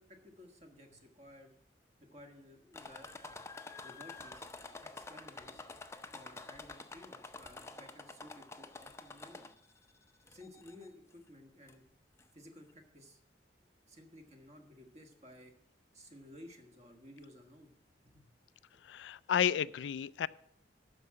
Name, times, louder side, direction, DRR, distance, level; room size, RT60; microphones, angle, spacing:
voice 1, 0.0-1.5 2.0-3.4 3.8-4.4 4.8-5.8 6.1-9.5 10.3-11.8 12.3-13.2 13.8-15.5 15.9-17.7 18.0-18.3, left 1 dB, 35° right, 5 dB, 1.4 m, -55 dB
sound 1, 2.7-9.8 10.3-10.9 11.7-11.8 12.2-12.3, left 3 dB, 15° left, 0.5 m, -49 dB
voice 2, 18.8-20.3, left 9 dB, 80° left, 18 dB, 0.3 m, -32 dB
12.0 x 4.8 x 7.4 m, 0.71 s
head